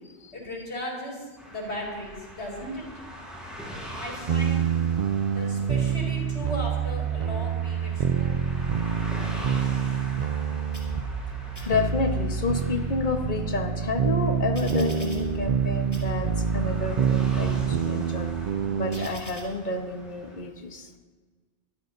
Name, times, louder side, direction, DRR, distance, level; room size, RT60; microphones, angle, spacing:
voice 1, 0.3-2.8 3.9-4.7 5.3-8.4, left 1 dB, 90° left, -1 dB, 4.8 m, -36 dB
sound 1, 1.4-20.4, equal, ahead, 4.8 m, -43 dB
sound 2, 4.3-19.1, right 8 dB, 55° right, 0.5 m, -27 dB
sound 3, 10.7-11.3 11.5-12.3 12.8-15.6 15.9-16.6 17.2-19.4, equal, 20° left, 3.1 m, -39 dB
voice 2, 11.5-18.3 18.8-20.9, left 3 dB, 50° left, 4 dB, 1.3 m, -30 dB
23.0 x 13.0 x 2.7 m, 1.4 s
omnidirectional pair, 1.1 m